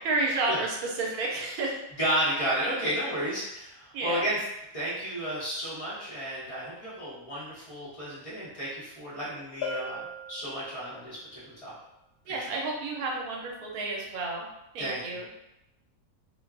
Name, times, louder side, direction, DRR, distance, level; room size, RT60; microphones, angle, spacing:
voice 1, 0.0-1.8 3.9-4.2 12.3-14.5 14.7-15.3, right 3 dB, 75° right, -1 dB, 1.0 m, -31 dB
voice 2, 2.0-4.4 4.7-11.7 12.3-12.5 14.8-15.0, right 1 dB, 25° left, -10 dB, 1.0 m, -32 dB
Bell, 9.6-11.2, left 3 dB, 85° left, 1.1 m, -38 dB
2.8 x 2.2 x 2.4 m, 0.89 s
omnidirectional pair, 1.6 m